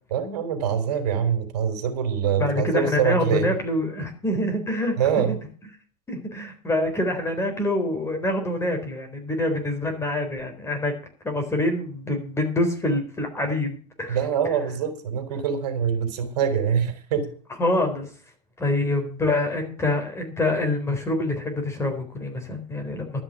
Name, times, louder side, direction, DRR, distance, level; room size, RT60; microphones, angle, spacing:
voice 1, 0.1-3.5 5.0-5.3 14.1-17.3, right 8 dB, 80° right, 7 dB, 3.5 m, -24 dB
voice 2, 2.4-5.4 6.1-11.0 11.2-14.2 17.6-18.1 18.6-23.2, left 1 dB, 15° left, 4 dB, 4.0 m, -26 dB
12.5 x 6.0 x 9.5 m, 0.43 s
supercardioid pair, 125°, 20 cm